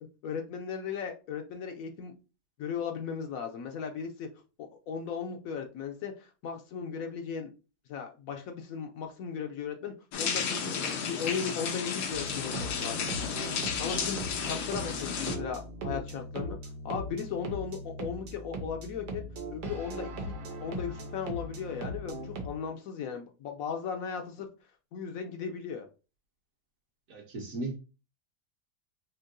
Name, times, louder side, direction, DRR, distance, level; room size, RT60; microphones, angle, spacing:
voice 1, 0.2-2.1 2.6-4.3 4.9-7.5 7.9-13.3 13.8-16.6 16.8-20.3 20.6-24.5 24.9-25.9, left 6 dB, 70° left, 0.9 m, -37 dB
sound 1, 10.1-15.4, left 6 dB, 90° left, 1.3 m, -33 dB
sound 2, 12.1-22.5, right 1 dB, 90° right, 1.4 m, -39 dB
voice 2, 27.1-27.8, right 2 dB, 60° right, 1.3 m, -36 dB
4.5 x 2.8 x 2.6 m
omnidirectional pair, 1.7 m